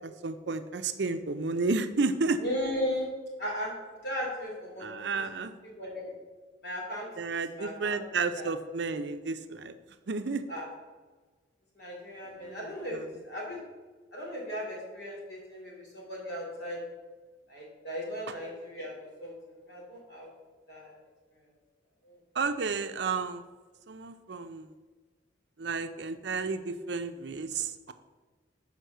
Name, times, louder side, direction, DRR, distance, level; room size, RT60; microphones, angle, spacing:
voice 1, 0.0-2.4 4.8-5.6 7.2-9.7 10.1-10.4 12.4-12.6 12.9-13.0 22.4-23.4 23.9-24.7 25.6-27.9, right 4 dB, 65° right, 9 dB, 0.5 m, -32 dB
voice 2, 2.4-3.1 3.4-3.7 4.0-5.3 5.6-6.1 6.6-7.1 7.5-8.0 8.4-8.5 10.5-10.7 11.7-13.6 14.1-16.8 17.5-20.3 20.7-21.0 22.0-22.2, equal, 60° left, -3 dB, 2.8 m, -37 dB
6.3 x 5.2 x 6.7 m, 1.3 s
head